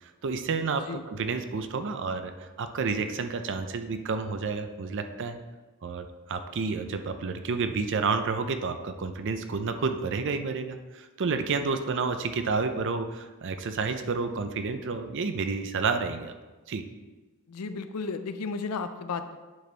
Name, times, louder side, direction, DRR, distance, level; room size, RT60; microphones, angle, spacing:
voice 1, 0.0-5.4 5.8-16.3 16.7-16.8, right 4 dB, 55° right, 8 dB, 0.5 m, -30 dB
voice 2, 17.5-19.4, left 4 dB, 80° left, 10 dB, 0.5 m, -33 dB
9.3 x 4.2 x 3.3 m, 1.2 s
head